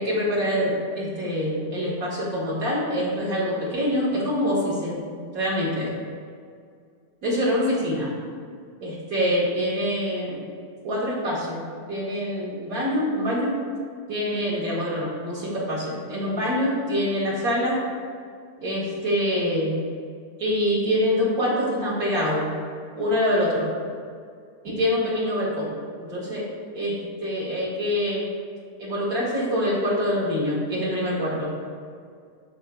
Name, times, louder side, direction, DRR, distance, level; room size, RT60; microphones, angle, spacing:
voice 1, 0.0-5.0 5.3-5.9 7.2-8.1 8.8-10.4 10.8-11.6 11.9-13.6 14.1-17.8 18.6-19.7 20.4-22.5 22.9-23.7 24.6-25.7 26.0-26.5 26.7-28.3 28.8-31.5, equal, 60° right, -6 dB, 2.2 m, -25 dB
9.1 x 6.6 x 2.4 m, 2.1 s
omnidirectional pair, 1.8 m